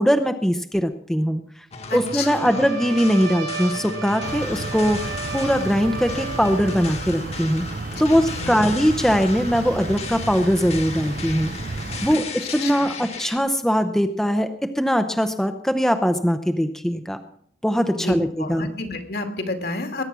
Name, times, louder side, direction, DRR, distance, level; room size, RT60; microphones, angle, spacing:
voice 1, 0.0-1.4 1.9-7.7 8.0-11.5 12.0-12.2 12.5-14.5 14.8-17.2 17.6-18.7, equal, 5° left, 7 dB, 0.8 m, -21 dB
sound 1, 1.7-13.4, left 4 dB, 35° left, 1.6 m, -36 dB
voice 2, 1.9-2.6 8.1-8.6 12.1-13.0 17.9-20.0, left 3 dB, 60° left, 5 dB, 2.4 m, -31 dB
Trumpet, 2.1-7.0, right 4 dB, 80° right, 3.1 m, -34 dB
sound 2, 4.2-12.2, right 3 dB, 50° right, 0.7 m, -32 dB
21.0 x 9.6 x 6.2 m, 0.64 s
head